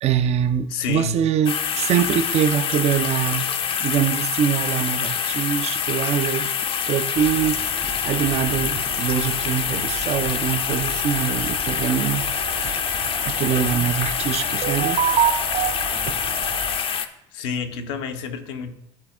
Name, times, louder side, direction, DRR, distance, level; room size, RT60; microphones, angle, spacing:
voice 1, 0.0-3.5 3.8-6.5 6.9-12.8 13.2-15.8 16.1-16.2, right 9 dB, 45° right, 12 dB, 0.6 m, -23 dB
voice 2, 0.7-1.2 17.3-18.8, left 5 dB, 75° left, 5 dB, 0.8 m, -29 dB
sound 1, 1.5-17.1, left 7 dB, 40° left, 0.6 m, -26 dB
sound 2, 7.1-16.8, right 4 dB, 65° right, 2.1 m, -35 dB
10.5 x 4.1 x 3.6 m, 0.84 s
hypercardioid pair, 65°, 15 cm